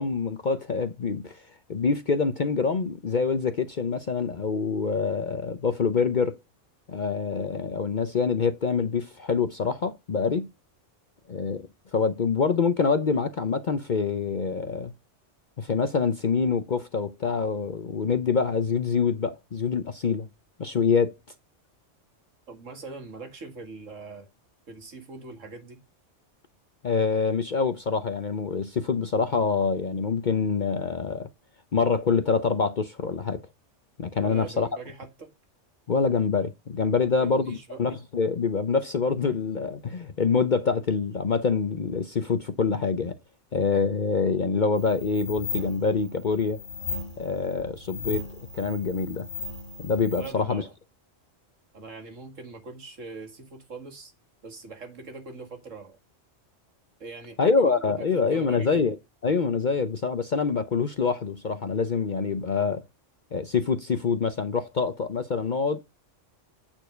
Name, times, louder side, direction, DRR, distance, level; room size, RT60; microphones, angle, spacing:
voice 1, 0.0-1.4 1.7-6.4 6.9-10.5 11.3-14.9 15.6-20.3 20.6-21.2 26.8-31.3 31.7-33.4 34.0-34.7 35.9-43.2 43.5-46.6 47.2-48.3 48.5-49.3 49.8-50.6 57.4-59.0 59.2-62.8 63.3-65.8, left 5 dB, 45° left, 0.8 m, -25 dB
voice 2, 22.5-24.3 24.7-25.8 34.2-35.3 37.0-37.8 50.1-50.7 51.7-54.1 54.4-56.0 57.0-58.8, right 3 dB, 85° right, 2.3 m, -42 dB
sound 1, 44.8-50.3, left 4 dB, 75° left, 2.5 m, -37 dB
8.9 x 4.7 x 5.0 m
omnidirectional pair, 1.3 m